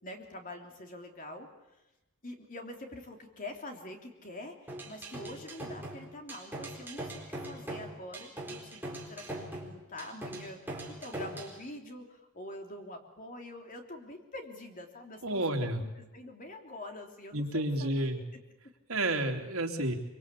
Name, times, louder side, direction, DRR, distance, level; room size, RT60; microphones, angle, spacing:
voice 1, 0.0-1.5 2.2-18.2, left 1 dB, 40° left, 3 dB, 3.2 m, -45 dB
sound 1, 4.7-11.6, right 1 dB, 10° right, 4.2 m, -41 dB
voice 2, 15.2-15.8 17.3-18.2 18.9-19.9, right 1 dB, 75° right, 3 dB, 3.1 m, -30 dB
24.5 x 24.0 x 8.5 m, 0.96 s
head